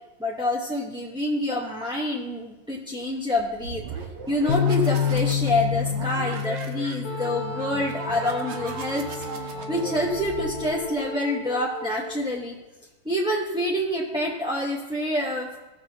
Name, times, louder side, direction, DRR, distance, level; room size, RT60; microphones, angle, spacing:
voice 1, 0.2-3.8 4.3-9.0 9.7-12.5 13.0-15.5, left 1 dB, 5° right, -4 dB, 0.6 m, -27 dB
sound 1, 3.4-11.0, right 4 dB, 75° right, 1.7 m, -38 dB
sound 2, 4.5-10.7, left 8 dB, 70° left, 1.3 m, -29 dB
Wind instrument woodwind instrument, 7.0-12.2, equal, 55° left, 0.9 m, -37 dB
16.5 x 7.2 x 2.9 m, 1.1 s
omnidirectional pair, 2.1 m